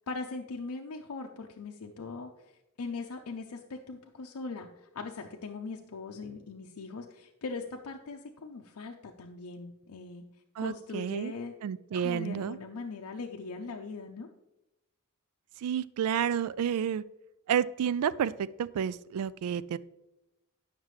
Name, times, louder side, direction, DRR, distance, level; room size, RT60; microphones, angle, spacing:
voice 1, 0.1-2.5 2.8-10.2 10.6-11.5 11.9-14.3, left 4 dB, 90° left, 1 dB, 0.6 m, -40 dB
voice 2, 10.6-11.3 11.6-12.6 15.6-17.0 17.5-19.8, right 8 dB, 80° right, 19 dB, 0.3 m, -30 dB
9.1 x 5.9 x 3.2 m, 0.94 s
head